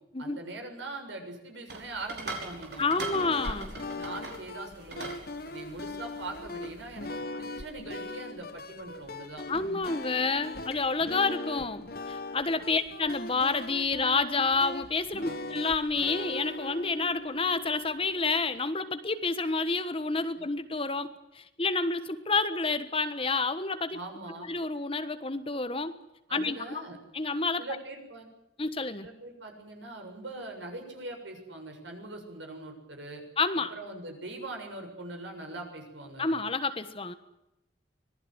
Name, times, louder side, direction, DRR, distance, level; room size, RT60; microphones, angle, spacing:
voice 1, 0.2-3.7 4.0-5.1 5.5-9.8 12.6-12.8 15.2-15.4 23.9-24.5 26.3-27.0 27.6-28.3 29.0-33.2 33.7-36.4, right 2 dB, 80° right, 3 dB, 7.1 m, -42 dB
sound 1, 1.7-7.2, right 2 dB, 55° right, 5.3 m, -42 dB
voice 2, 2.8-3.7 9.5-24.0 24.5-26.0 26.3-26.8 27.1-27.6 28.6-29.1 33.4-33.7 36.2-37.1, left 3 dB, 30° left, 10 dB, 1.4 m, -29 dB
sound 2, 3.1-18.6, left 2 dB, 50° left, 1.2 m, -40 dB
25.5 x 19.0 x 8.1 m, 0.89 s
head